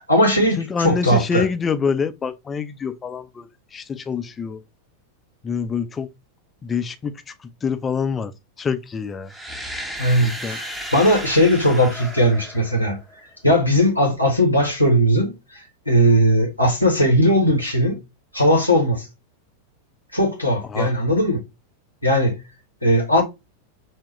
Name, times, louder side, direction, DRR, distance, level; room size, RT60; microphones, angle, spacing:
voice 1, 0.0-1.5 10.0-13.0 13.4-15.6 15.9-18.0 18.3-19.1 20.1-21.4 22.0-22.4 22.8-23.2, equal, 85° left, 1.2 m, -18 dB
voice 2, 0.6-3.5 3.7-4.6 5.4-6.1 6.6-7.1 7.6-8.3 8.6-9.3 10.2-10.6 20.7-20.9, left 6 dB, 20° left, 0.5 m, -26 dB
sound 1, 9.3-13.2, equal, 5° right, 0.9 m, -34 dB
5.9 x 2.1 x 3.0 m
figure-of-eight pair, 90°, 0 cm